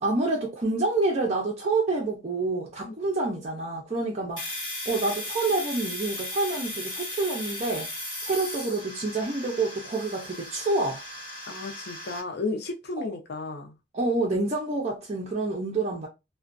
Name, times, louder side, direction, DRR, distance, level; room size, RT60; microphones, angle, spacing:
voice 1, 0.0-4.4 4.9-7.9 8.2-11.0 13.0-13.1 13.9-16.1, right 3 dB, 35° right, 0.5 m, -27 dB
Domestic sounds home sounds, 4.4-12.2, left 1 dB, 25° left, 1.5 m, -36 dB
voice 2, 11.5-13.7, left 3 dB, 55° left, 0.6 m, -33 dB
2.4 x 2.2 x 2.4 m
head